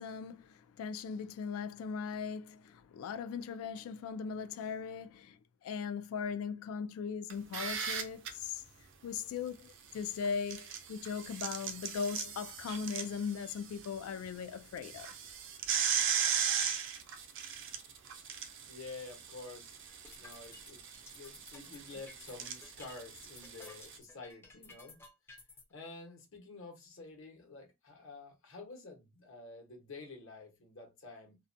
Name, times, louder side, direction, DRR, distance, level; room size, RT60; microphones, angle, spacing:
voice 1, 0.0-8.6 9.0-15.1, left 6 dB, 85° left, 0.3 m, -39 dB
sound 1, 7.3-8.3 10.2-13.9 14.2-14.3 14.8-24.0, right 8 dB, 60° right, 0.5 m, -37 dB
voice 2, 18.7-19.8 20.2-25.0 25.7-31.4, left 3 dB, 70° left, 1.0 m, -49 dB
sound 2, 19.9-25.6, left 3 dB, 10° left, 0.4 m, -54 dB
2.4 x 2.1 x 2.5 m
head